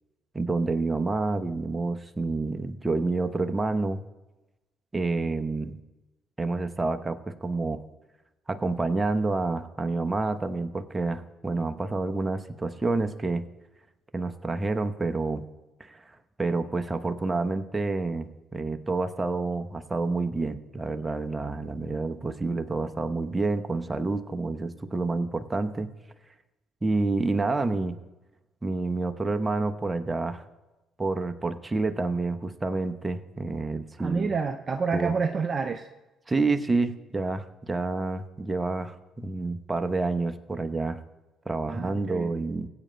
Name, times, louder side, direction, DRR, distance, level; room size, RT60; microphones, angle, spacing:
voice 1, 0.3-4.0 4.9-5.7 6.4-7.8 8.5-13.4 14.1-15.4 15.8-16.0 16.4-25.9 26.8-28.0 28.6-30.4 31.0-34.3 34.9-35.1 36.3-41.0 41.5-42.7, right 3 dB, 20° right, 9 dB, 0.9 m, -28 dB
voice 2, 34.0-35.9 41.7-42.3, right 5 dB, 40° right, 8 dB, 0.5 m, -29 dB
21.5 x 8.7 x 2.2 m, 1.1 s
hypercardioid pair, 45°, 0 cm